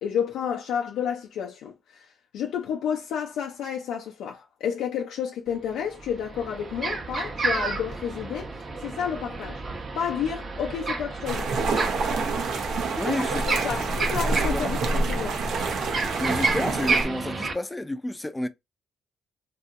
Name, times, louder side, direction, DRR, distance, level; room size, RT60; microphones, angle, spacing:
voice 1, 0.0-9.6 10.0-11.5 13.1-15.4, left 8 dB, 85° left, 0.5 m, -31 dB
sound 1, 5.5-5.6 5.9-17.5, right 3 dB, 40° right, 0.9 m, -31 dB
sound 2, 11.3-17.0, right 3 dB, 75° right, 0.8 m, -27 dB
voice 2, 13.0-13.8 14.5-14.7 16.2-18.5, left 1 dB, 15° left, 0.4 m, -30 dB
2.8 x 2.6 x 2.4 m
cardioid pair, 90°, 0 cm